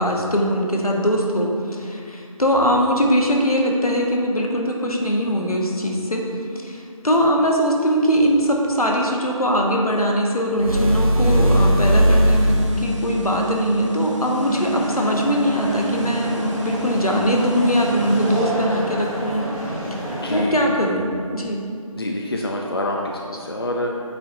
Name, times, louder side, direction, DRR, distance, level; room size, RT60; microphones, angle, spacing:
voice 1, 0.0-6.2 6.5-19.5 20.3-21.6, equal, 85° left, 0 dB, 1.1 m, -21 dB
sound 1, 10.5-12.9, equal, 80° right, 1.2 m, -17 dB
sound 2, 12.3-18.5, right 2 dB, 55° right, 0.7 m, -28 dB
sound 3, 14.4-20.4, right 1 dB, 5° right, 0.9 m, -29 dB
voice 2, 20.2-20.7 21.9-24.0, left 1 dB, 45° left, 0 dB, 0.4 m, -26 dB
8.5 x 4.5 x 2.7 m, 2.4 s
figure-of-eight pair, 165°, 18 cm